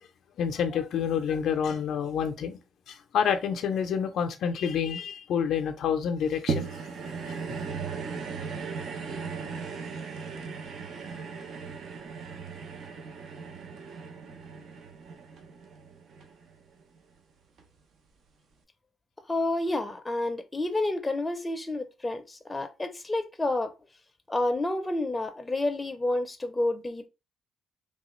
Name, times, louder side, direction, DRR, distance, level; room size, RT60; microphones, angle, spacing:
voice 1, 0.4-2.6 2.9-6.7 7.3-7.4, left 7 dB, 75° left, 0.4 m, -28 dB
sound 1, 6.5-17.0 17.6-17.7, right 5 dB, 65° right, 0.6 m, -37 dB
voice 2, 19.3-23.7 24.3-27.1, left 2 dB, 15° left, 0.5 m, -29 dB
3.2 x 2.3 x 3.0 m
cardioid pair, 90°, 0 cm